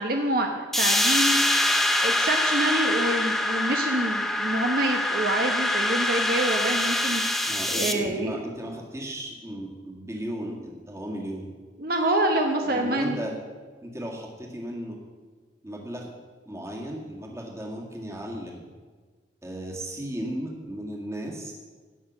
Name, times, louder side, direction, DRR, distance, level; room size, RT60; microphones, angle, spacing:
voice 1, 0.0-1.4 2.0-7.2 7.7-8.4 11.8-13.2, right 1 dB, 55° right, 3 dB, 1.0 m, -26 dB
sound 1, 0.7-7.9, left 1 dB, ahead, 0.6 m, -24 dB
voice 2, 7.4-11.5 12.6-13.3 13.8-15.0 15.6-16.1 16.5-18.7 19.4-21.5, right 1 dB, 15° right, 0 dB, 1.9 m, -35 dB
16.5 x 6.7 x 6.1 m, 1.5 s
head